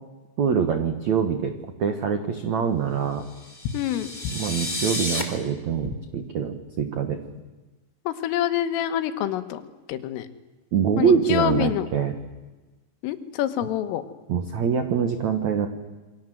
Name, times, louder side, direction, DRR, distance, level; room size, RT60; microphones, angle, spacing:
voice 1, 0.4-1.5 1.8-3.2 4.3-7.2 10.7-12.2 14.3-15.7, right 7 dB, 75° right, 7 dB, 1.6 m, -24 dB
sound 1, 3.3-5.2, left 2 dB, 10° left, 2.6 m, -31 dB
voice 2, 3.7-4.1 8.1-10.3 11.0-11.9 13.0-14.0, left 11 dB, 85° left, 10 dB, 4.0 m, -26 dB
28.5 x 23.5 x 7.8 m, 1.2 s
omnidirectional pair, 5.7 m